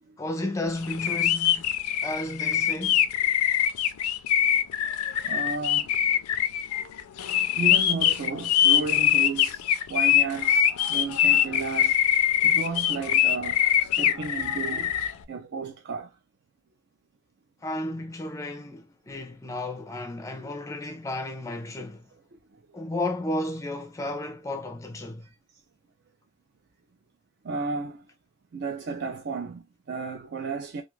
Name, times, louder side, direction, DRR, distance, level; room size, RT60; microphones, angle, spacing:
voice 1, 0.2-1.7 2.0-3.1 17.6-22.1 22.7-25.3, left 1 dB, 15° left, 0.4 m, -33 dB
sound 1, 0.8-15.1, left 10 dB, 80° left, 0.4 m, -23 dB
voice 2, 5.2-6.0 7.6-12.0 12.4-15.0 15.3-16.2 22.3-22.4 27.4-28.1 28.5-30.8, right 4 dB, 45° right, 0.4 m, -33 dB
2.4 x 2.3 x 3.0 m
head